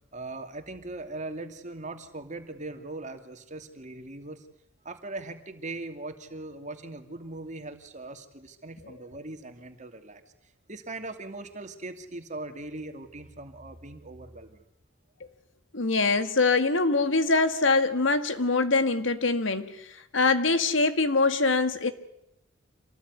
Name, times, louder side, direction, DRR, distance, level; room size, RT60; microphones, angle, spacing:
voice 1, 0.1-4.5 4.8-10.2 10.7-14.6, right 2 dB, 40° right, 7 dB, 2.6 m, -40 dB
voice 2, 15.7-19.9 20.1-21.9, left 3 dB, 70° left, 10 dB, 1.9 m, -23 dB
27.0 x 19.0 x 9.7 m, 0.82 s
head